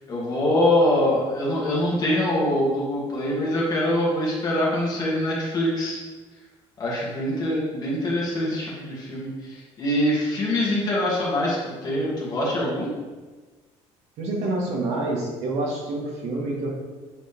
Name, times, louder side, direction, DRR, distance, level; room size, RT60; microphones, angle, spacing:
voice 1, 0.1-6.0 6.8-12.9, left 1 dB, 30° left, -5 dB, 2.1 m, -24 dB
voice 2, 14.2-16.7, right 2 dB, 60° right, -2 dB, 1.6 m, -27 dB
9.0 x 4.0 x 3.5 m, 1.3 s
cardioid pair, 160°, 13 cm